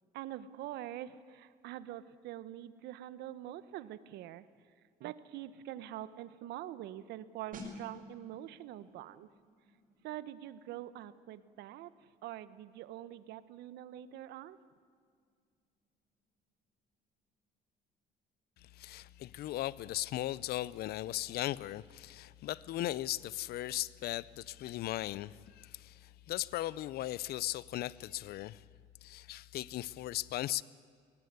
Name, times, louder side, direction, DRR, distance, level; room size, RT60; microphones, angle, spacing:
voice 1, 0.1-4.5 5.0-9.3 10.0-11.9 12.2-14.6, right 13 dB, 80° right, 15 dB, 1.0 m, -45 dB
sound 1, 7.5-18.0 18.3-18.6, equal, 55° right, 6.0 m, -56 dB
voice 2, 18.6-28.6 29.0-30.6, left 15 dB, 70° left, 21 dB, 0.6 m, -38 dB
21.0 x 17.5 x 9.5 m, 2.1 s
cardioid pair, 110°, 17 cm